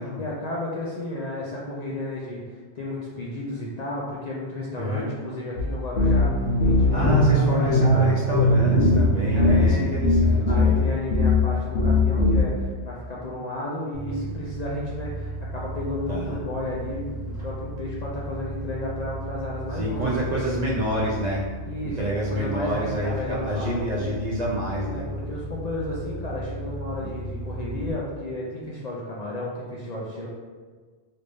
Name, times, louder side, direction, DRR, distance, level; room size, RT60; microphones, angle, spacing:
voice 1, 0.2-2.4 2.7-6.3 6.6-8.1 8.7-9.0 9.3-20.2 21.6-24.2 24.7-30.3, left 1 dB, 55° left, -5 dB, 0.5 m, -33 dB
voice 2, 4.8-5.1 6.9-10.8 16.1-16.4 19.7-21.4 21.8-25.1 27.0-27.1, equal, 50° right, -5 dB, 0.5 m, -28 dB
sound 1, 5.6-5.7 6.0-10.8 11.1-11.4 11.7-12.4, left 1 dB, 70° left, 0.9 m, -19 dB
sound 2, 13.9-27.9, right 1 dB, 5° left, 0.9 m, -35 dB
3.2 x 2.6 x 3.3 m, 1.5 s
omnidirectional pair, 1.1 m